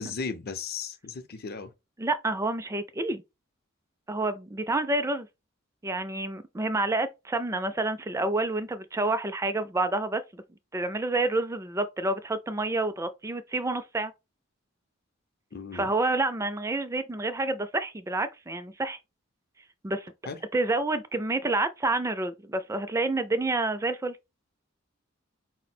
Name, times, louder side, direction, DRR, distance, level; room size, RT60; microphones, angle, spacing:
voice 1, 0.0-1.7 15.5-15.9 20.3-20.4, left 5 dB, 50° left, 0.6 m, -36 dB
voice 2, 2.0-3.2 4.1-5.3 5.8-10.4 10.7-14.1 15.7-19.0 19.8-20.1 20.5-24.2, right 2 dB, 15° right, 0.4 m, -28 dB
4.4 x 2.1 x 4.2 m
head